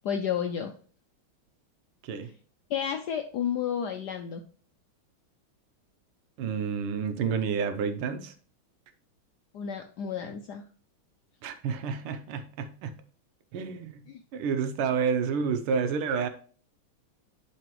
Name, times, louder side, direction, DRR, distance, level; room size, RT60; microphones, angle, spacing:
voice 1, 0.0-0.7 2.7-4.4 9.5-10.6, left 8 dB, 75° left, 5 dB, 0.9 m, -31 dB
voice 2, 6.4-8.3 11.4-12.9 13.5-14.0 14.3-16.3, right 6 dB, 90° right, 8 dB, 1.7 m, -29 dB
11.0 x 4.1 x 3.0 m, 0.42 s
omnidirectional pair, 2.3 m